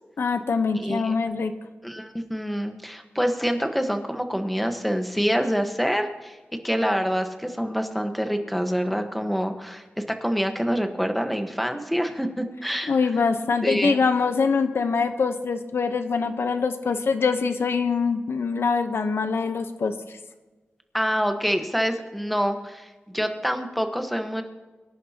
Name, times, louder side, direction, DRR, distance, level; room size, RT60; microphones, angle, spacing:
voice 1, 0.2-1.5 12.9-20.2, left 5 dB, 80° left, 8 dB, 1.0 m, -24 dB
voice 2, 0.8-1.1 1.8-6.4 6.6-9.8 10.2-12.9 13.6-14.0 20.9-24.4, equal, ahead, 6 dB, 1.4 m, -26 dB
24.0 x 11.0 x 2.9 m, 1.2 s
wide cardioid pair, 85°, 4 cm